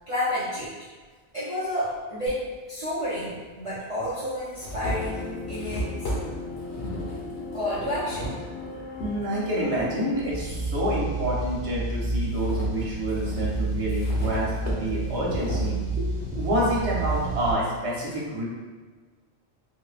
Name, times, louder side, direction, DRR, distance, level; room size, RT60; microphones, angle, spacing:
voice 1, 0.1-0.7 1.3-5.9 7.5-8.4, left 1 dB, 35° right, -12 dB, 0.7 m, -30 dB
sound 1, 2.3-2.4 3.4-3.5 4.0-9.1 9.7-10.9 11.3-17.4, equal, 80° left, 1.1 m, -35 dB
sound 2, 4.8-10.6, left 3 dB, 40° left, 1.3 m, -38 dB
voice 2, 9.0-16.1 16.3-18.4, equal, 70° right, -6 dB, 1.1 m, -28 dB
sound 3, 10.3-17.5, right 2 dB, 25° left, 1.3 m, -29 dB
3.8 x 2.1 x 2.4 m, 1.4 s
omnidirectional pair, 1.1 m